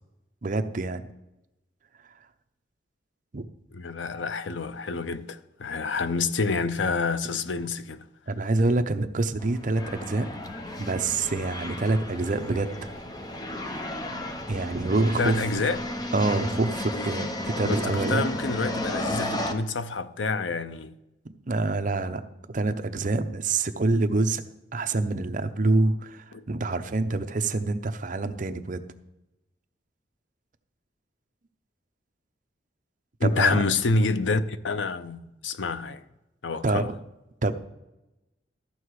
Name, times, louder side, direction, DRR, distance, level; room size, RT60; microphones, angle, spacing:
voice 1, 0.4-1.0 3.3-3.5 8.3-10.3 10.8-12.9 14.5-15.4 16.1-18.3 21.5-22.2 22.5-24.4 24.7-28.8 33.2-33.6 36.6-36.9 37.4-37.5, right 2 dB, 45° right, 0.7 m, -26 dB
voice 2, 3.7-8.1 15.2-15.9 16.9-17.1 17.6-21.0 26.3-26.4 33.2-36.0 36.4-36.9, left 4 dB, 90° left, 0.6 m, -28 dB
sound 1, 9.4-19.5, left 1 dB, 20° left, 0.9 m, -33 dB
13.5 x 6.6 x 4.8 m
head